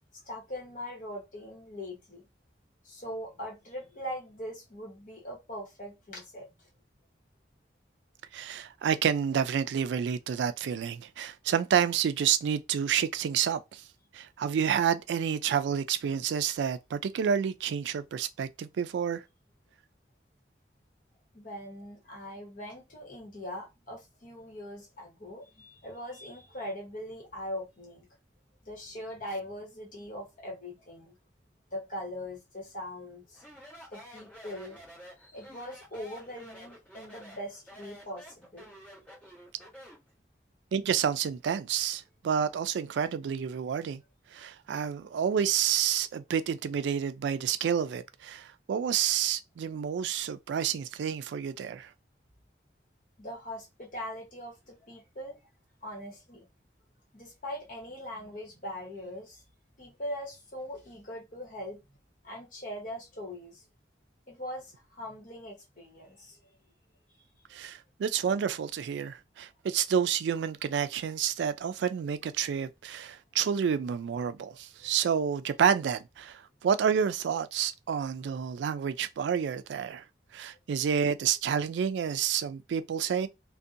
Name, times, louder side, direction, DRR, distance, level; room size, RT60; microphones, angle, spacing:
voice 1, 0.2-2.2 2.8-6.7 21.3-28.1 28.6-31.2 31.7-33.4 33.9-34.8 35.2-38.7 53.2-55.4 55.8-56.4 57.1-59.4 59.8-61.8 62.2-63.6 64.3-66.4 67.1-67.3 74.8-74.9, equal, 45° left, 1.0 m, -41 dB
voice 2, 8.3-13.8 14.1-19.2 40.7-44.0 44.3-51.9 67.5-80.0 80.3-83.3, right 8 dB, 85° right, 0.3 m, -29 dB
Speech, 33.3-40.1, equal, 10° left, 1.2 m, -50 dB
2.7 x 2.1 x 2.5 m
head